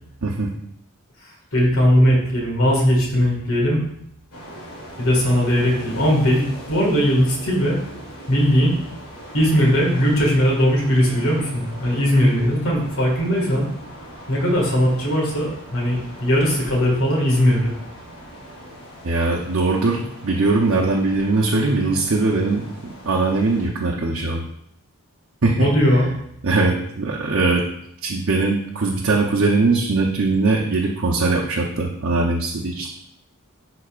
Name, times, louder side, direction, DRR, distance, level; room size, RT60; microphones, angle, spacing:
voice 1, 0.2-0.5 19.0-24.4 25.4-25.7 26.4-27.7 28.0-32.9, right 3 dB, 60° right, -2 dB, 0.8 m, -21 dB
voice 2, 1.5-3.8 5.0-7.8 8.3-8.7 9.3-13.7 14.3-17.7 25.6-26.1, equal, 70° left, -2 dB, 1.9 m, -19 dB
sound 1, 4.3-23.7, equal, 85° left, 1.6 m, -40 dB
11.5 x 4.0 x 2.4 m, 0.74 s
head